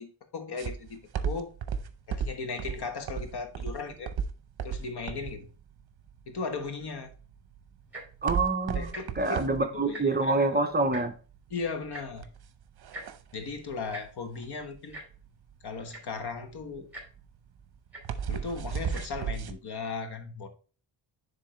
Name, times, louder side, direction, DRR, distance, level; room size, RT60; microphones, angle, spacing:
voice 1, 0.0-1.5 2.1-4.1 4.6-5.5 6.3-7.1 8.7-9.4 9.7-10.6 11.5-12.3 13.3-15.0 15.6-16.9 18.3-20.5, left 4 dB, 60° left, 1.3 m, -37 dB
sound 1, 0.6-19.5, right 7 dB, 60° right, 0.7 m, -35 dB
Tick-tock, 7.8-8.2 8.8-9.0 9.3-9.5 9.8-10.3 10.9-11.0 11.9-12.0 12.9-13.1 13.9-14.0 14.9-15.0 15.6-15.7 15.9-16.2 16.9-17.0 17.9-18.0 18.8-19.0 19.7-19.8, right 1 dB, 5° right, 2.7 m, -42 dB
voice 2, 8.2-8.9 9.2-11.1, right 3 dB, 20° right, 0.5 m, -26 dB
10.0 x 3.7 x 3.1 m
wide cardioid pair, 150°, 44 cm